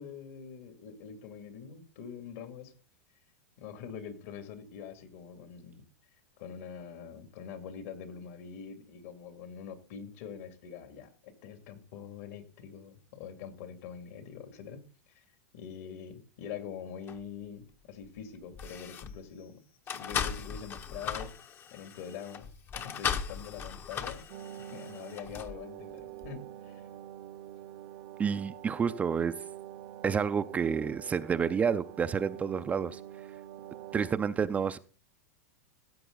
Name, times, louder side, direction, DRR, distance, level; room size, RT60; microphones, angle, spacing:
voice 1, 0.0-2.7 3.6-5.8 6.4-14.8 15.1-15.2 15.5-21.3 21.7-22.5 22.7-24.3 24.6-26.8, left 7 dB, 65° left, 2.5 m, -44 dB
sound 1, 17.1-17.2 18.0-18.2 18.5-19.2 19.9-25.6 26.2-26.3, left 7 dB, 25° left, 0.9 m, -37 dB
sound 2, 24.3-34.2, right 13 dB, 45° right, 0.8 m, -46 dB
voice 2, 28.2-29.3 30.0-33.0 33.9-34.8, right 6 dB, 15° right, 0.5 m, -29 dB
15.0 x 7.8 x 4.0 m
supercardioid pair, 135°, 8 cm